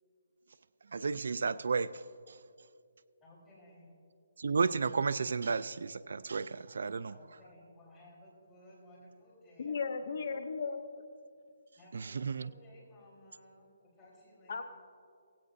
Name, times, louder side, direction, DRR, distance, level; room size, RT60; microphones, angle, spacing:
voice 1, 0.9-2.4 4.4-7.1 11.9-12.5, right 5 dB, 65° right, 16 dB, 0.3 m, -33 dB
voice 2, 3.2-3.9 7.1-10.1 11.8-14.6, left 1 dB, 10° left, -8 dB, 3.8 m, -58 dB
voice 3, 9.6-10.8 14.5-14.6, left 5 dB, 50° left, 7 dB, 0.6 m, -35 dB
17.0 x 17.0 x 2.7 m, 2.4 s
hypercardioid pair, 175°, 0 cm